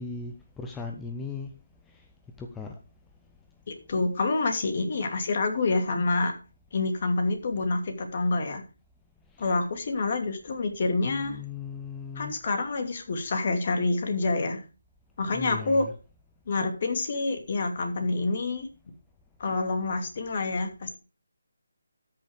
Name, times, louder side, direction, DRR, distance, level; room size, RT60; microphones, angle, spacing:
voice 1, 0.0-1.5 1.9-2.0 2.4-2.8 9.3-9.5 11.1-12.4 15.3-15.9, left 4 dB, 5° left, 3 dB, 0.7 m, -38 dB
voice 2, 3.7-6.3 6.7-8.6 9.4-11.4 12.2-14.6 15.2-15.9 16.5-18.7 19.4-21.0, left 3 dB, 40° left, 6 dB, 2.5 m, -27 dB
13.0 x 6.5 x 5.1 m, 0.33 s
figure-of-eight pair, 165°, 0 cm